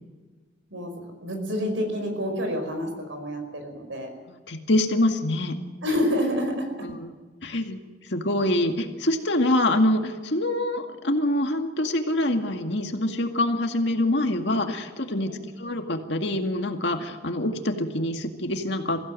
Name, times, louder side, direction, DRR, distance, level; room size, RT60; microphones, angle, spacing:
voice 1, 0.7-4.1 5.8-6.7 15.3-15.4, equal, 80° right, 5 dB, 5.3 m, -28 dB
voice 2, 4.3-5.6 6.8-7.1 7.4-7.8 8.1-15.3 15.6-19.0, left 1 dB, 65° left, 4 dB, 2.1 m, -25 dB
22.5 x 15.5 x 7.7 m, 1.4 s
head